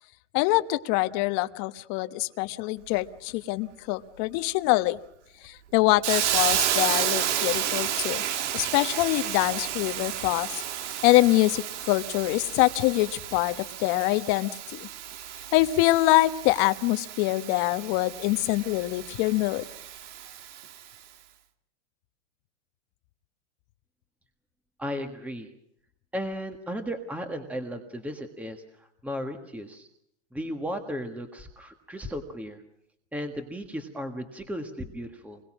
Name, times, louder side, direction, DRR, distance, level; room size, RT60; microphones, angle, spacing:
voice 1, 0.3-5.0 5.4-8.2 8.5-10.6 11.0-14.9 15.5-19.6, left 19 dB, 50° left, 11 dB, 1.3 m, -24 dB
Hiss, 6.0-20.8, right 10 dB, 85° right, 2.1 m, -31 dB
voice 2, 24.8-25.5 26.1-29.9 30.3-32.6 33.1-35.4, equal, 5° right, 6 dB, 1.6 m, -35 dB
28.0 x 22.0 x 6.2 m, 0.73 s
supercardioid pair, 140°, 35 cm